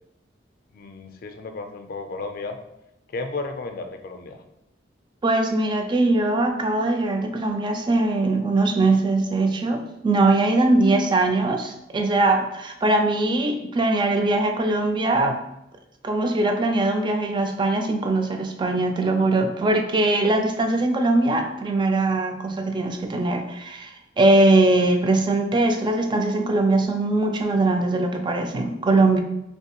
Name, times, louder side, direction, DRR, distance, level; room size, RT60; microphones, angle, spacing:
voice 1, 0.7-2.6 3.1-4.4, left 3 dB, 50° left, 6 dB, 0.4 m, -33 dB
voice 2, 5.2-15.4 16.0-29.2, right 2 dB, 25° right, 5 dB, 0.3 m, -21 dB
3.3 x 2.9 x 2.9 m, 0.84 s
head